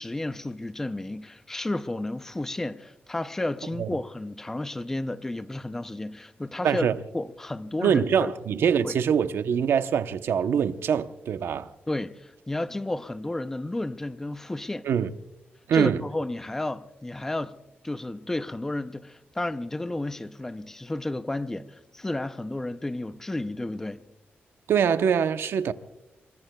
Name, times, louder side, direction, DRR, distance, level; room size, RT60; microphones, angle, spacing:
voice 1, 0.0-6.9 7.1-8.3 8.8-8.9 11.9-14.9 15.7-17.5 17.8-24.0, left 2 dB, 10° left, 0.5 m, -32 dB
voice 2, 6.6-7.0 7.8-11.7 14.8-15.1 15.7-16.0 24.7-25.7, right 7 dB, 85° right, 0.8 m, -24 dB
27.0 x 23.0 x 2.3 m
wide cardioid pair, 180°, 4 cm